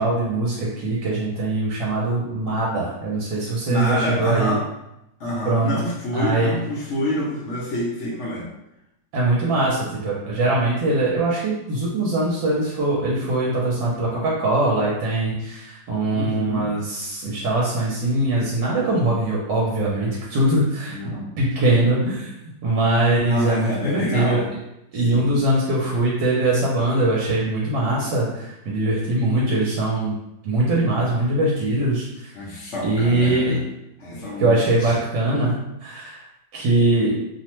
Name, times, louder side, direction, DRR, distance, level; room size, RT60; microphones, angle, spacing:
voice 1, 0.0-4.6 5.4-5.7 6.1-6.5 9.1-22.3 22.6-24.4 24.9-30.1 30.4-32.3 32.8-33.6 34.4-36.2 36.5-37.2, right 2 dB, 80° right, -4 dB, 1.3 m, -22 dB
voice 2, 3.7-4.6 5.2-8.5 16.1-16.7 20.9-21.3 23.2-24.5 25.1-25.3 32.3-33.6 34.0-35.0, equal, 70° left, -5 dB, 0.6 m, -27 dB
3.0 x 2.1 x 2.9 m, 0.87 s
omnidirectional pair, 2.0 m